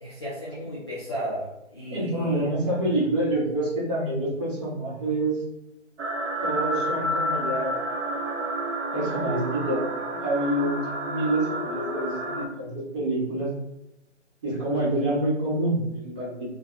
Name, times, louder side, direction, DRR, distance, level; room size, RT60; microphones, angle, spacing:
voice 1, 0.0-2.5, equal, 25° left, -8 dB, 0.5 m, -34 dB
voice 2, 1.9-5.4 6.4-8.2 8.9-13.5 14.4-16.4, right 1 dB, 25° right, -7 dB, 1.2 m, -27 dB
sound 1, 6.0-12.5, right 1 dB, 75° right, 0.8 m, -30 dB
2.6 x 2.2 x 3.8 m, 0.90 s
figure-of-eight pair, 145°, 37 cm